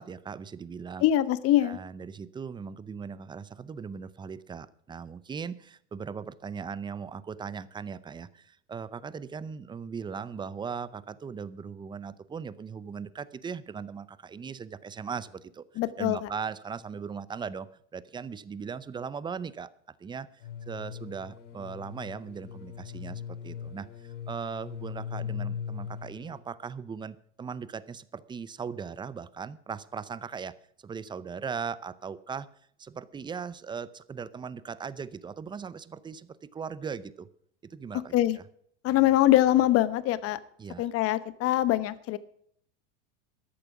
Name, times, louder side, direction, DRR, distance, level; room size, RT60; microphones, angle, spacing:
voice 1, 0.0-1.0 1.6-15.6 16.0-19.7 20.0-20.3 20.7-30.6 30.8-32.5 32.8-37.3 37.6-38.4 40.6-40.9, right 6 dB, 15° right, 18 dB, 0.6 m, -39 dB
voice 2, 1.0-1.8 15.8-16.3 38.1-38.4 38.8-40.4 40.8-42.2, left 14 dB, 40° left, 15 dB, 1.1 m, -23 dB
sound 1, 20.4-26.4, left 8 dB, 85° left, 2.7 m, -39 dB
13.5 x 11.0 x 5.9 m, 0.66 s
supercardioid pair, 125°, 35 cm